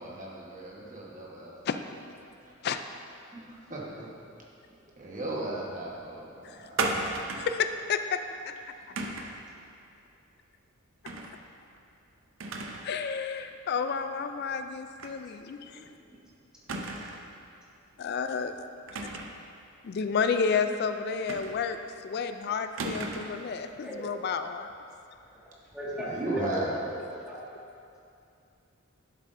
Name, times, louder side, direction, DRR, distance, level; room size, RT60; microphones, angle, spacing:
voice 1, 0.0-1.7 3.5-4.1 4.9-6.9 8.9-9.1 26.1-26.7, right 2 dB, 35° right, -4 dB, 1.3 m, -37 dB
sound 1, 6.8-7.6 9.0-9.4 11.0-11.4 11.7-11.8 12.4-12.9 13.3-13.4 15.0-15.2 15.5-15.6 16.7-17.3 18.9-19.4 21.3-21.8 22.8-23.4, right 2 dB, 65° right, 0.6 m, -34 dB
voice 2, 7.4-8.2 12.8-15.8 18.0-18.5 19.8-24.7, left 6 dB, 50° left, 8 dB, 0.3 m, -30 dB
voice 3, 16.6-17.0 23.8-24.1 25.3-27.6, equal, 5° right, -9 dB, 1.7 m, -37 dB
11.0 x 7.5 x 2.6 m, 2.6 s
head